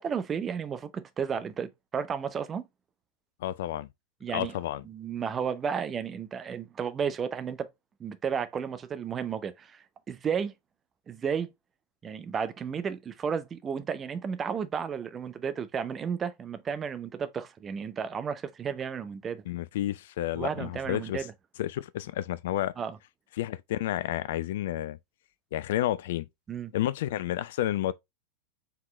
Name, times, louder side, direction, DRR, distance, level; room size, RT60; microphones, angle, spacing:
voice 1, 0.0-2.6 4.2-4.5 4.8-7.7 8.0-10.5 11.1-11.5 12.0-19.4 20.3-21.3 22.8-23.0 26.5-26.7, right 7 dB, 20° right, 0.6 m, -33 dB
voice 2, 3.4-3.9 4.3-4.8 19.5-21.2 21.6-22.7 23.4-25.0 25.5-26.3 26.7-27.9, left 13 dB, 55° left, 0.3 m, -30 dB
4.5 x 3.7 x 3.1 m
figure-of-eight pair, 90°, 0 cm